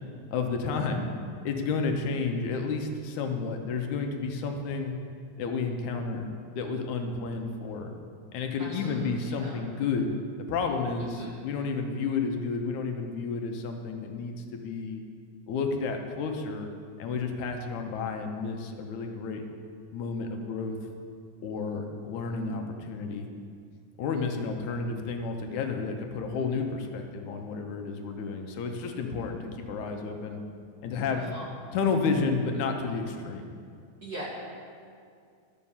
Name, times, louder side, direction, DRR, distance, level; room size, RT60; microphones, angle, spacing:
voice 1, 0.3-1.1 1.4-4.9 5.4-6.3 6.6-7.9 8.3-10.2 10.5-15.0 15.5-16.7 17.0-19.4 19.9-20.7 21.4-23.3 24.0-30.4 30.8-31.3 31.7-33.5, left 4 dB, 80° left, 4 dB, 2.3 m, -31 dB
voice 2, 8.6-9.6 11.0-11.4 31.1-31.5 34.0-34.3, right 1 dB, 40° right, -6 dB, 1.8 m, -41 dB
12.5 x 5.7 x 7.2 m, 2.3 s
omnidirectional pair, 3.4 m